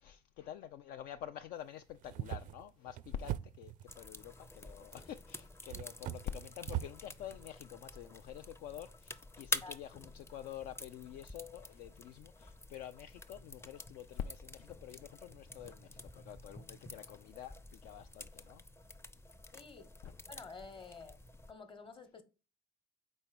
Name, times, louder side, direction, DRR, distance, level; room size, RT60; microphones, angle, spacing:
voice 1, 0.0-18.6 20.0-20.1, left 10 dB, 60° left, 0.4 m, -47 dB
sound 1, 1.9-3.9 4.9-5.0 5.7-7.0, right 13 dB, 55° right, 0.4 m, -41 dB
sound 2, 3.9-21.5, left 2 dB, 15° left, 0.6 m, -48 dB
voice 2, 19.5-19.9 20.3-21.2 21.5-22.2, left 4 dB, 30° left, 1.1 m, -50 dB
4.3 x 4.1 x 5.2 m
hypercardioid pair, 60°, 17 cm